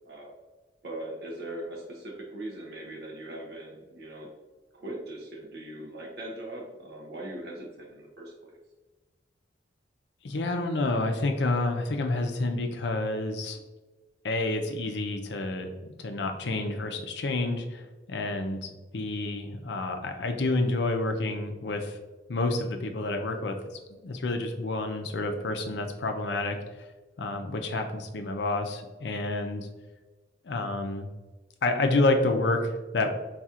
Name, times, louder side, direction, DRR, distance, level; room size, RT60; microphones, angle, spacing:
voice 1, 0.8-4.3 4.7-8.6, right 1 dB, 65° right, -1 dB, 0.7 m, -40 dB
voice 2, 10.2-13.6 14.2-17.8 18.1-22.0 22.3-23.6 23.9-26.9 27.2-29.7 30.4-31.1 31.6-33.1, left 2 dB, 70° left, 5 dB, 0.5 m, -29 dB
4.3 x 4.0 x 2.4 m, 1.2 s
head